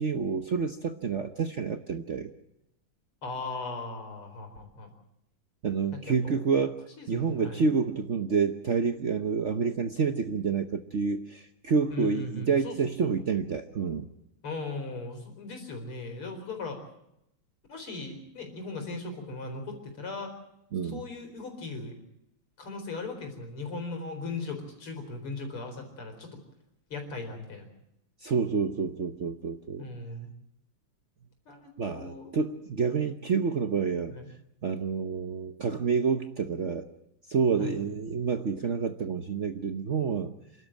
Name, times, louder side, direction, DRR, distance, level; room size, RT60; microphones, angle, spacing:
voice 1, 0.0-2.3 5.6-6.8 7.1-14.1 20.7-21.0 28.2-29.8 31.8-34.1 34.6-36.9 37.3-40.3, right 5 dB, 50° right, 7 dB, 0.9 m, -28 dB
voice 2, 3.2-4.9 6.1-6.4 7.0-7.6 11.9-12.9 14.4-16.8 17.7-20.3 20.8-22.0 22.6-26.3 26.9-27.7 29.8-30.3 31.5-32.3 34.1-34.3 37.6-37.8, left 3 dB, 90° left, 4 dB, 5.1 m, -38 dB
27.5 x 12.5 x 9.1 m, 0.83 s
omnidirectional pair, 2.3 m